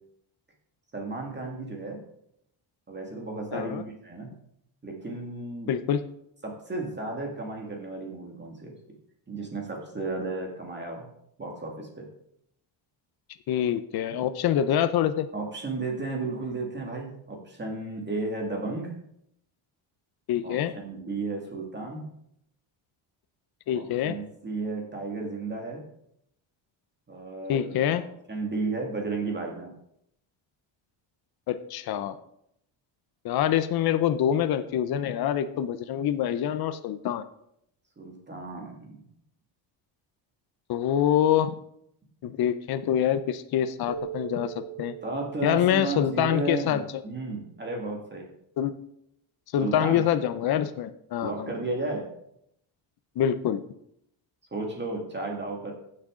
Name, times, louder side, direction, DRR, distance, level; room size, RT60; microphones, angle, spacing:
voice 1, 0.9-2.0 2.9-4.3 4.8-5.7 6.4-8.7 9.3-11.1 11.4-12.0 15.3-18.9 20.4-22.0 23.7-25.8 27.1-29.7 38.0-39.1 45.0-46.8 47.0-48.3 49.6-50.0 51.2-52.1 54.5-55.7, right 3 dB, 20° right, 0 dB, 2.1 m, -33 dB
voice 2, 3.5-3.8 5.7-6.1 13.5-15.3 20.3-20.7 23.7-24.2 27.5-28.0 31.5-32.2 33.2-37.2 40.7-41.6 42.2-45.0 45.4-46.8 48.6-48.7 49.5-51.5 53.2-53.6, left 10 dB, 50° left, 11 dB, 0.7 m, -25 dB
Keyboard (musical), 43.9-47.1, right 8 dB, 85° right, 3.0 m, -41 dB
15.0 x 6.5 x 3.8 m, 0.75 s
cardioid pair, 130°, 49 cm